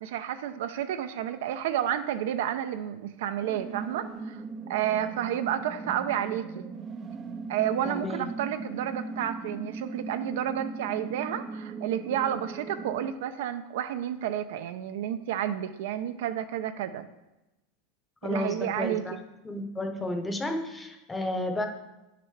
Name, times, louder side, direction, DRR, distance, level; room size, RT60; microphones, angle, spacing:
voice 1, 0.0-4.4 4.7-6.7 7.5-17.1 18.2-19.2, right 10 dB, 70° right, 10 dB, 0.5 m, -31 dB
sound 1, 3.4-13.1, right 4 dB, 25° right, 0.4 m, -39 dB
voice 2, 7.8-8.3 18.2-19.1 19.4-21.7, left 1 dB, 10° left, 5 dB, 0.8 m, -32 dB
9.1 x 6.6 x 3.3 m, 0.98 s
supercardioid pair, 155°, 0 cm